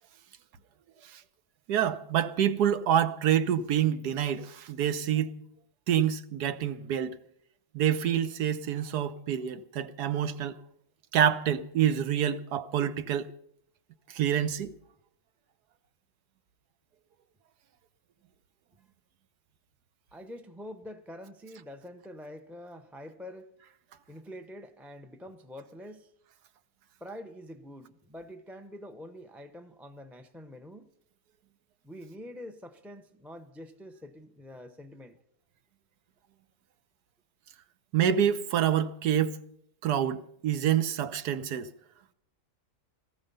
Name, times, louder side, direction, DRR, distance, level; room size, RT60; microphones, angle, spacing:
voice 1, 1.7-5.4 5.9-7.2 7.7-10.6 11.1-13.3 14.1-14.7 37.9-39.4 39.8-41.7, right 9 dB, 85° right, 1.4 m, -27 dB
voice 2, 20.1-23.5 24.1-26.1 27.0-30.9 31.8-35.2, left 1 dB, ahead, 0.5 m, -46 dB
18.5 x 14.0 x 5.5 m
omnidirectional pair, 1.7 m